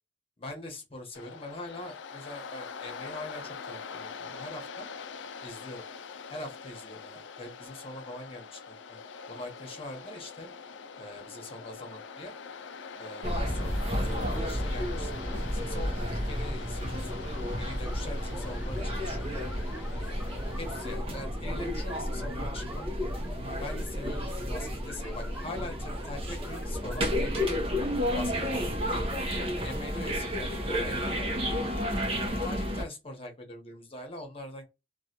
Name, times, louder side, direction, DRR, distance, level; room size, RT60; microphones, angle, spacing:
voice 1, 0.4-4.9 5.4-5.9 6.3-9.0 9.3-10.5 11.0-12.3 13.0-17.3 17.6-18.8 19.0-20.1 20.6-22.9 23.5-27.6 28.1-31.3 31.6-31.7 32.0-34.6, left 1 dB, 30° left, 1.1 m, -43 dB
Waves surf, 1.1-20.9, left 5 dB, 80° left, 0.4 m, -44 dB
sound 1, 13.2-32.8, equal, 30° right, 0.8 m, -32 dB
sound 2, 17.9-27.8, equal, 10° right, 0.4 m, -46 dB
3.1 x 2.4 x 2.9 m
head